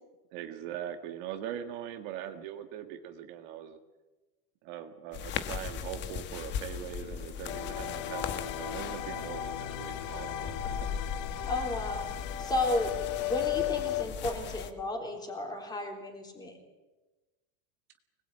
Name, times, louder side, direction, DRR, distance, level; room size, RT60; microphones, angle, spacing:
voice 1, 0.3-3.8 4.6-9.4 9.7-10.6, right 10 dB, 45° right, 6 dB, 1.7 m, -41 dB
sound 1, 5.1-14.7, left 8 dB, 25° left, 1.4 m, -39 dB
sound 2, 7.5-14.1, left 12 dB, 65° left, 2.1 m, -36 dB
voice 2, 11.5-12.1 12.4-12.9 13.2-16.5, left 2 dB, 10° left, 2 dB, 3.9 m, -33 dB
25.0 x 20.5 x 8.9 m, 1.2 s
supercardioid pair, 175°, 41 cm